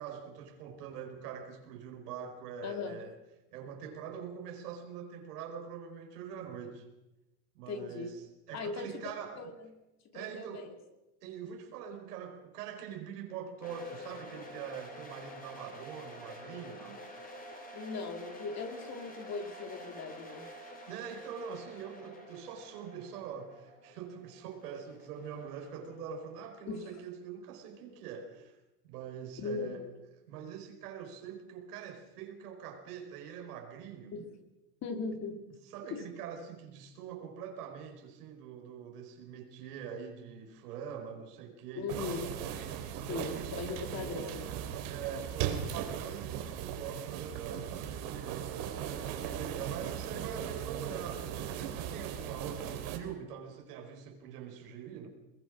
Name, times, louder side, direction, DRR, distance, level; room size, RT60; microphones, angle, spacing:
voice 1, 0.0-3.1 3.5-6.9 7.5-9.4 10.1-10.7 11.2-17.0 20.9-28.6 28.8-29.8 30.3-34.1 35.6-42.2 43.0-43.9 44.9-48.6 49.0-55.1, right 7 dB, 70° right, 4 dB, 5.0 m, -44 dB
voice 2, 2.6-3.0 7.7-8.1 8.5-9.7 10.1-10.8 17.7-20.5 26.7-26.9 29.4-29.9 34.1-34.4 34.8-35.5 35.9-36.0 41.7-42.4 43.1-44.5, left 4 dB, 35° left, 6 dB, 2.8 m, -39 dB
sound 1, 13.6-26.5, equal, 20° left, 3.9 m, -49 dB
sound 2, 41.9-53.0, right 9 dB, 55° right, 3.3 m, -38 dB
22.0 x 21.5 x 6.3 m, 0.97 s
supercardioid pair, 120°, 47 cm